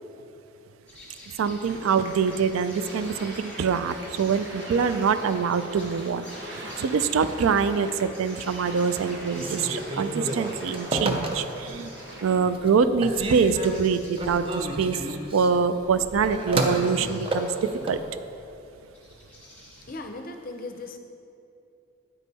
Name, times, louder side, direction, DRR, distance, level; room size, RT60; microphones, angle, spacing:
sound 1, 0.9-20.0, left 1 dB, 5° left, 1.1 m, -49 dB
voice 1, 1.4-11.9 12.2-18.0, right 5 dB, 75° right, 12 dB, 0.3 m, -25 dB
sound 2, 1.7-12.3, right 1 dB, 55° right, 1.2 m, -42 dB
Telephone, 9.3-11.8 12.2-12.7 13.0-18.0, right 2 dB, 25° right, 0.5 m, -31 dB
voice 2, 19.9-21.0, left 2 dB, 40° left, 5 dB, 0.5 m, -37 dB
9.4 x 5.4 x 4.1 m, 2.7 s
head